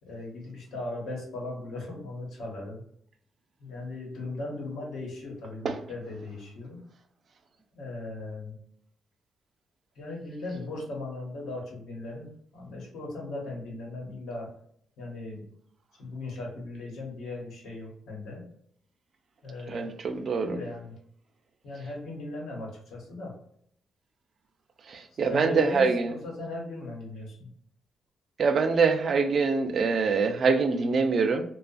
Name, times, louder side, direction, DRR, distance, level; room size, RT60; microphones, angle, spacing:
voice 1, 0.0-2.8 3.6-6.8 7.8-8.6 9.9-14.5 15.0-15.4 16.0-18.4 19.4-19.9 20.4-21.0 21.6-23.4 25.3-27.5, left 2 dB, 85° left, -2 dB, 1.1 m, -38 dB
voice 2, 19.7-20.6 24.9-26.1 28.4-31.4, right 4 dB, 40° right, 7 dB, 0.3 m, -24 dB
2.7 x 2.3 x 2.4 m, 0.68 s
wide cardioid pair, 170°, 0 cm